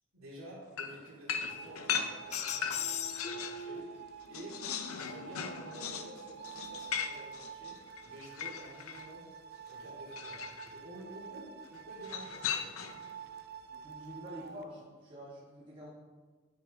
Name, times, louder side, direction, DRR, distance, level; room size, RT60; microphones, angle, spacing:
voice 1, 0.1-3.8 4.3-4.7 5.0-7.8 8.0-9.3 9.6-12.4, right 1 dB, 80° right, -4 dB, 2.9 m, -50 dB
sound 1, 0.8-3.7 4.0-9.1 10.1-10.7 12.0-13.1, left 7 dB, 90° left, 0.7 m, -38 dB
sound 2, 1.5-14.7, right 6 dB, 50° right, 0.4 m, -49 dB
sound 3, 2.3-4.1 4.7-5.8, left 7 dB, 30° left, 0.3 m, -40 dB
voice 2, 13.7-15.9, equal, 25° right, -7 dB, 1.3 m, -47 dB
9.4 x 6.5 x 3.7 m, 1.4 s
head